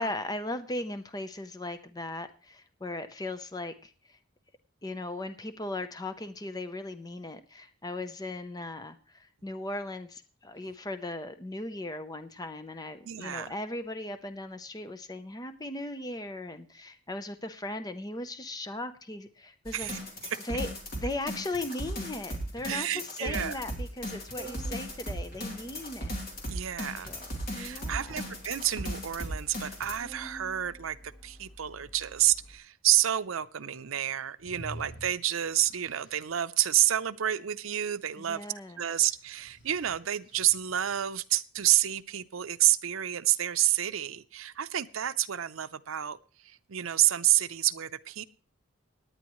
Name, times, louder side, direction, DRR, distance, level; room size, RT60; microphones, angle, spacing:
voice 1, 0.0-4.2 4.8-19.9 20.4-26.1 26.4-26.6 27.1-27.2 27.5-28.3 38.2-38.8, left 2 dB, 20° left, 10 dB, 0.7 m, -38 dB
voice 2, 13.0-13.5 19.7-20.0 20.3-20.4 22.7-23.6 26.5-27.1 27.5-38.5 38.8-48.2, right 13 dB, 80° right, 13 dB, 0.6 m, -29 dB
sound 1, 19.7-29.9, equal, 45° left, 3.2 m, -37 dB
Organ, 23.5-32.6, right 1 dB, ahead, 4.4 m, -50 dB
sound 2, 34.4-36.3 39.1-41.1, equal, 60° left, 4.3 m, -48 dB
18.0 x 10.5 x 3.1 m, 0.37 s
head